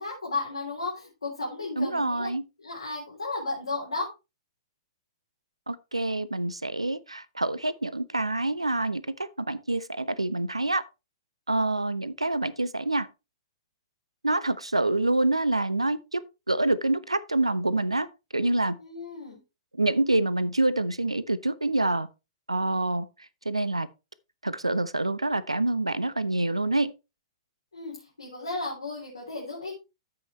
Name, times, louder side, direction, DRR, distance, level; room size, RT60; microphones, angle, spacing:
voice 1, 0.0-2.3 2.6-4.1 18.8-19.4 27.7-29.7, left 3 dB, 75° left, 3.3 m, -34 dB
voice 2, 1.8-2.4 5.7-10.8 11.5-13.1 14.2-16.2 16.5-18.1 18.3-18.8 19.8-22.1 22.5-23.1 23.5-23.9 24.4-26.9, right 2 dB, 85° right, 0.5 m, -26 dB
13.0 x 5.7 x 3.1 m
figure-of-eight pair, 110°, 3 cm